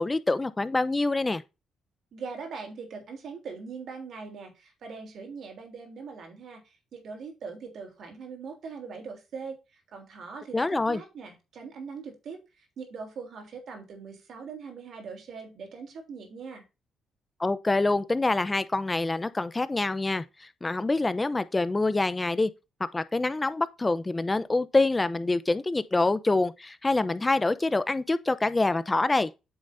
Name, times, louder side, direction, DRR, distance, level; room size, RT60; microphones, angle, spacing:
voice 1, 0.0-1.4 10.5-11.0 17.4-22.5 22.9-29.3, left 2 dB, 20° left, 0.7 m, -26 dB
voice 2, 2.1-16.6, right 5 dB, 65° right, 3.2 m, -41 dB
8.9 x 6.7 x 2.7 m
cardioid pair, 90°, 0 cm